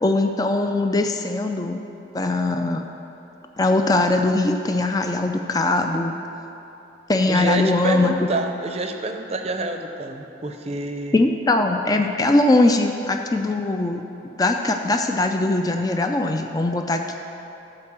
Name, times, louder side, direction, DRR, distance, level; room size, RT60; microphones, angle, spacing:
voice 1, 0.0-1.8 2.1-2.9 3.6-6.2 7.1-8.3 11.1-17.1, left 2 dB, 20° left, 5 dB, 0.4 m, -21 dB
voice 2, 7.3-11.2, right 2 dB, 35° right, 5 dB, 0.6 m, -27 dB
13.0 x 4.5 x 7.4 m, 3.0 s
head